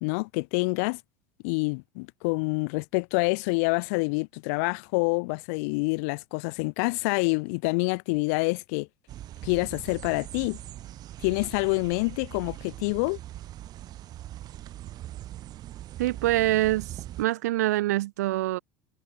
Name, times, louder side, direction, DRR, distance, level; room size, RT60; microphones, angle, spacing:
voice 1, 0.0-1.0 1.4-8.9 9.4-10.6 11.2-13.2, left 31 dB, 60° left, 0.6 m, -27 dB
sound 1, 9.1-17.3, right 13 dB, 45° right, 3.7 m, -41 dB
voice 2, 16.0-18.6, right 16 dB, 70° right, 1.5 m, -25 dB
figure-of-eight pair, 75°, 9 cm